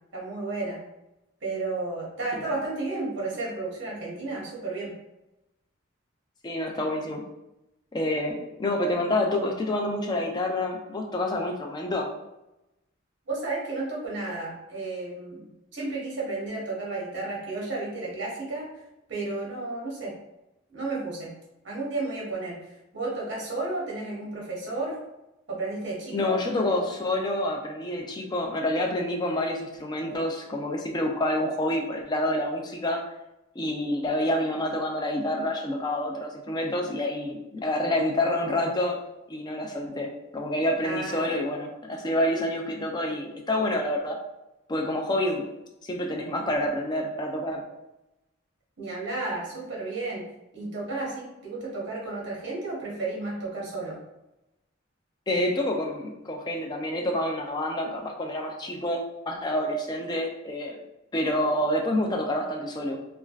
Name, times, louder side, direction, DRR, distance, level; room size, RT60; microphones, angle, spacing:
voice 1, 0.1-0.8 1.4-4.9 13.3-18.7 19.1-20.1 20.7-21.3 21.6-25.0 25.5-26.4 40.8-41.3 48.8-50.2 50.5-54.0, right 3 dB, 55° right, -4 dB, 0.9 m, -32 dB
voice 2, 6.4-7.2 7.9-12.1 26.1-33.0 33.6-39.0 39.3-44.2 44.7-45.5 45.8-47.6 55.3-59.0 59.3-60.8 61.1-63.0, left 1 dB, 20° left, 2 dB, 0.3 m, -28 dB
3.2 x 2.3 x 2.3 m, 0.93 s
head